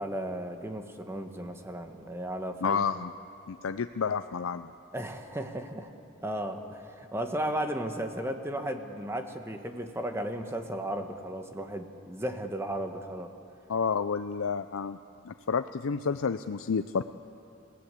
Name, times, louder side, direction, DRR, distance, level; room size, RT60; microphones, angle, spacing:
voice 1, 0.0-2.8 4.9-5.9 6.2-13.3, right 1 dB, 15° right, 5 dB, 1.3 m, -35 dB
voice 2, 2.6-3.1 3.5-4.7 13.7-15.0 15.2-17.0, left 6 dB, 85° left, 10 dB, 0.5 m, -30 dB
28.5 x 16.0 x 8.4 m, 2.6 s
head